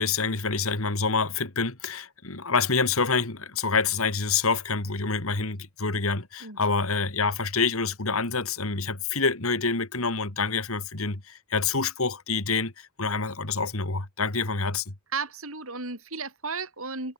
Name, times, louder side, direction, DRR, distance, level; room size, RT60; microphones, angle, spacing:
voice 1, 0.0-14.9, left 4 dB, 65° left, 2.5 m, -27 dB
voice 2, 15.1-17.1, right 4 dB, 65° right, 6.5 m, -34 dB
head